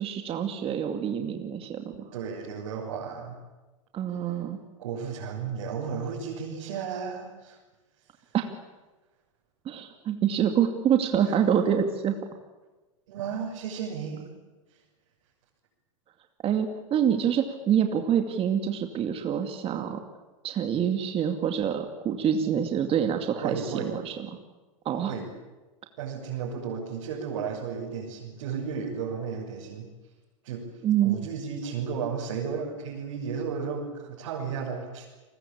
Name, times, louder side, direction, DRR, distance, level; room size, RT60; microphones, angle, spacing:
voice 1, 0.0-2.1 3.9-4.6 8.3-8.5 9.6-12.2 16.4-20.0 20.4-24.3 24.8-25.1 30.8-31.2, right 8 dB, 35° right, 5 dB, 2.5 m, -26 dB
voice 2, 2.1-3.4 4.8-7.6 11.3-11.4 13.1-14.3 14.7-14.8 23.4-23.9 25.1-25.2 26.0-29.9 30.4-30.7 31.0-35.1, right 6 dB, 70° right, -3 dB, 6.7 m, -33 dB
30.0 x 21.5 x 8.8 m, 1.2 s
hypercardioid pair, 100°, 17 cm